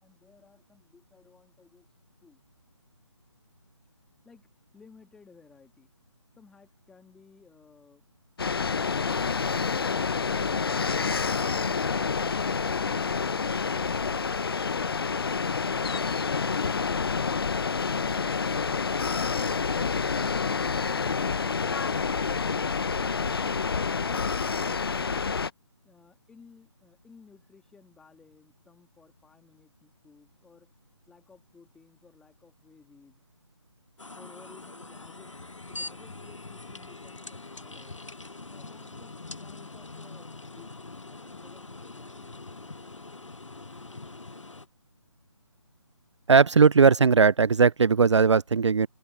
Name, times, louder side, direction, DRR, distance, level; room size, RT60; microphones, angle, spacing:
voice 1, 0.0-1.9 2.2-2.4 4.2-5.9 6.4-8.1 25.8-30.7 31.1-33.2 34.1-35.3 35.7-38.0 38.5-40.8 41.0-42.3, left 5 dB, 5° left, 2.2 m, -57 dB
sound 1, 8.4-25.5, left 5 dB, 50° left, 0.8 m, -28 dB
sound 2, 34.0-44.7, left 3 dB, 75° left, 1.2 m, -43 dB
voice 2, 46.3-48.9, right 5 dB, 65° right, 0.4 m, -18 dB
open air
figure-of-eight pair, 150°, 16 cm